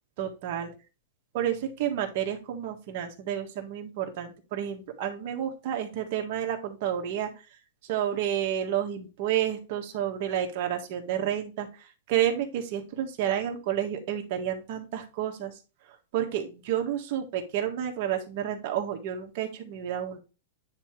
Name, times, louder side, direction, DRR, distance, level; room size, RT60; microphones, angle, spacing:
voice 1, 0.2-0.7 1.3-7.3 7.8-15.6 15.9-20.2, right 10 dB, 50° right, 3 dB, 1.5 m, -30 dB
9.6 x 3.5 x 3.2 m, 0.31 s
supercardioid pair, 150°, 0 cm